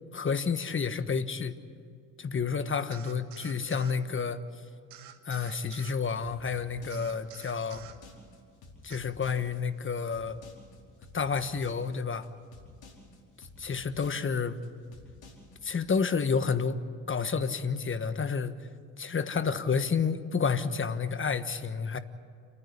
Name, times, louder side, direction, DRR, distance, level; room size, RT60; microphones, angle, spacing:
voice 1, 0.1-1.5 2.2-4.4 5.2-7.8 8.8-10.4 11.1-12.3 13.6-14.6 15.6-18.5 19.0-22.0, left 5 dB, 30° left, 12 dB, 1.3 m, -30 dB
sound 1, 2.9-4.0 4.9-6.0 6.9-8.0 8.9-9.0, right 12 dB, 85° right, 1.3 m, -49 dB
sound 2, 6.2-15.8, left 2 dB, 65° left, 4.9 m, -51 dB
29.0 x 9.8 x 9.8 m, 2.2 s
supercardioid pair, 65°, 40 cm